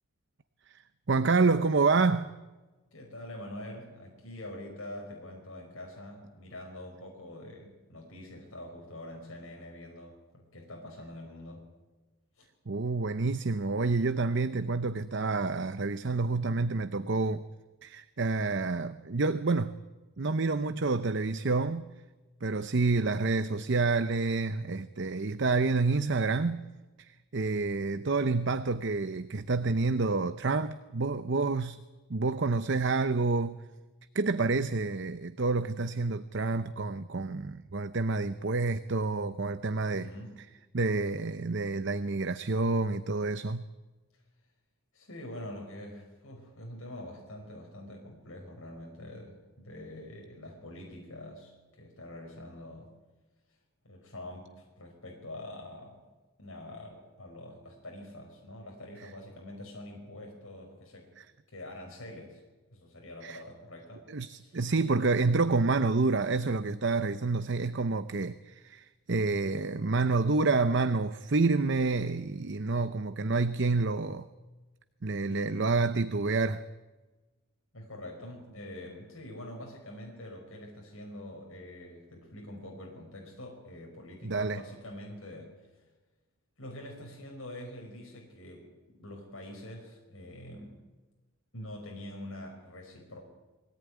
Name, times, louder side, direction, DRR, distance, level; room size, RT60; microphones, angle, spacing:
voice 1, 0.7-2.3 12.7-17.5 17.8-19.8 20.2-21.9 22.4-26.7 27.0-31.8 32.1-33.6 34.1-40.1 40.7-43.7 61.2-61.3 63.2-63.4 64.1-74.3 75.0-76.6 84.2-84.6, right 3 dB, 50° right, 11 dB, 0.7 m, -28 dB
voice 2, 2.9-11.6 12.4-12.5 39.8-40.3 44.1-44.2 44.9-52.9 53.8-56.0 56.4-61.1 61.5-62.4 62.7-64.0 64.4-64.6 75.3-75.7 77.7-85.8 86.6-90.8 91.5-93.2, left 1 dB, 65° left, 0 dB, 5.1 m, -45 dB
23.0 x 17.5 x 9.4 m, 1.2 s
head